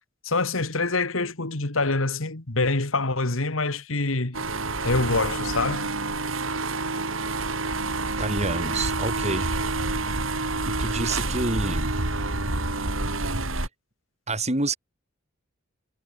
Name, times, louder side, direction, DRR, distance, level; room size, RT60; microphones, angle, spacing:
voice 1, 0.2-4.4 4.8-5.9, left 3 dB, 85° left, 2.2 m, -25 dB
sound 1, 4.3-13.7, right 2 dB, 80° right, 4.9 m, -28 dB
voice 2, 8.2-9.5 10.6-11.9 14.3-14.8, right 2 dB, 35° right, 5.9 m, -28 dB
head